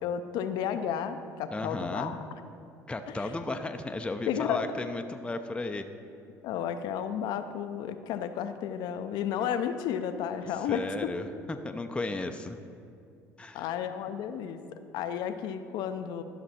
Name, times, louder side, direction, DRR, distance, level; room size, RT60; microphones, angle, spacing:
voice 1, 0.0-2.2 3.1-3.3 4.3-4.6 6.4-11.1 13.5-14.6 14.9-16.2, left 9 dB, 65° left, 9 dB, 0.6 m, -32 dB
voice 2, 1.5-2.1 2.9-5.9 10.7-12.6 13.4-13.7, left 2 dB, 15° left, 6 dB, 0.5 m, -34 dB
12.0 x 6.0 x 4.3 m, 2.4 s
hypercardioid pair, 70°, 8 cm